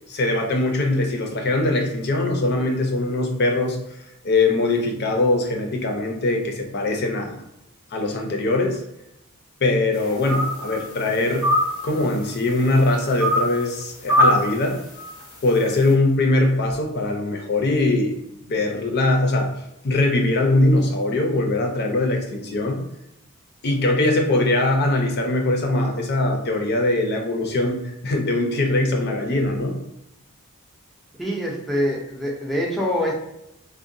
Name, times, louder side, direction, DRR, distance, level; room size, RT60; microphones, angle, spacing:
voice 1, 0.1-3.8 4.2-7.4 7.9-8.8 9.6-11.5 11.8-14.8 15.4-18.1 18.4-19.5 19.8-22.8 23.6-27.8 28.0-29.8, left 2 dB, 50° left, 3 dB, 0.6 m, -21 dB
sound 1, 10.0-10.8 11.2-12.3 13.2-13.7 14.1-14.6 15.0-15.2, equal, 80° left, 0.8 m, -21 dB
voice 2, 31.2-33.1, equal, ahead, -3 dB, 0.6 m, -24 dB
3.7 x 2.2 x 2.6 m, 0.84 s
head